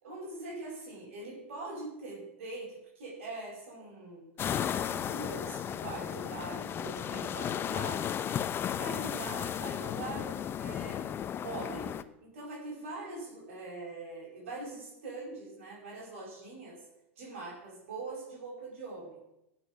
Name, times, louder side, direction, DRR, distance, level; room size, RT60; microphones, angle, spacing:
voice 1, 0.0-4.3 4.7-8.1 8.6-11.1 11.4-16.8 17.2-19.2, right 2 dB, 75° right, -2 dB, 5.7 m, -43 dB
sound 1, 4.4-12.0, left 9 dB, 35° left, 0.8 m, -34 dB
18.0 x 7.6 x 6.2 m, 0.87 s
hypercardioid pair, 95°, 7 cm